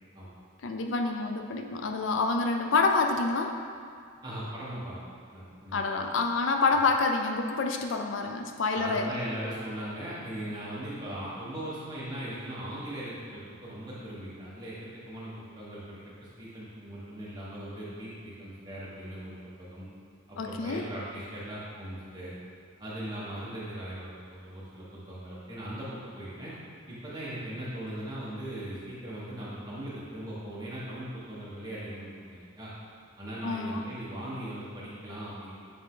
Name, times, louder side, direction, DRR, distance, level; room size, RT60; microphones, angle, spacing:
voice 1, 0.6-3.5 5.7-9.1 20.4-20.8 33.4-33.8, left 3 dB, 65° left, 3 dB, 0.4 m, -27 dB
voice 2, 4.2-4.9 5.3-6.0 8.7-14.7 15.1-19.9 20.3-22.3 22.8-26.5 26.9-32.7 33.2-35.5, right 1 dB, 20° right, -9 dB, 1.5 m, -39 dB
8.4 x 3.6 x 3.8 m, 2.3 s
head